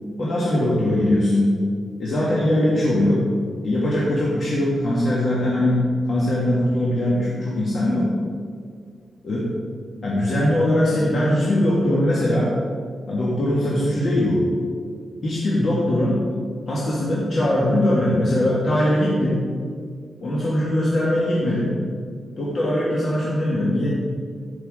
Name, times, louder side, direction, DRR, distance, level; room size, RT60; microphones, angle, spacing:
voice 1, 0.2-1.5 2.0-3.3 3.6-8.1 9.2-9.5 10.0-12.5 13.1-14.5 15.2-16.3 16.7-19.4 20.2-21.8 22.4-23.9, left 1 dB, 55° left, -6 dB, 1.9 m, -21 dB
14.5 x 6.1 x 3.7 m, 2.1 s
cardioid pair, 100°, 0 cm